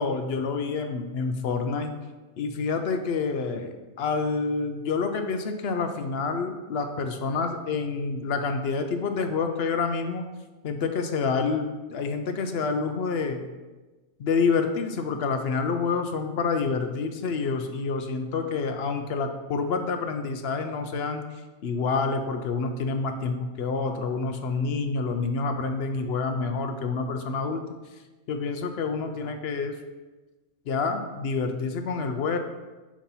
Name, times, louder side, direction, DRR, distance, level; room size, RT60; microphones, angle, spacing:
voice 1, 0.0-2.0 2.4-10.2 10.6-13.4 14.2-21.2 21.6-27.6 28.3-29.8 30.7-32.4, left 4 dB, 60° left, 6 dB, 0.7 m, -28 dB
7.2 x 2.9 x 5.4 m, 1.2 s
omnidirectional pair, 1.4 m